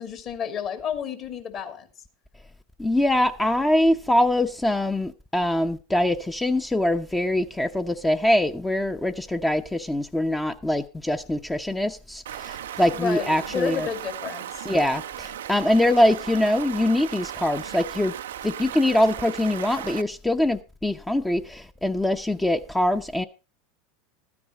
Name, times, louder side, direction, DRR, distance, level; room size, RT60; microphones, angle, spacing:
voice 1, 0.0-1.9 12.9-14.7, left 7 dB, 45° left, 2.5 m, -31 dB
voice 2, 2.8-13.9 14.6-18.1 18.4-23.2, left 1 dB, 10° left, 0.8 m, -23 dB
Stream, 12.3-20.0, right 11 dB, 70° right, 0.5 m, -36 dB
13.5 x 9.7 x 4.5 m
figure-of-eight pair, 80°, 0 cm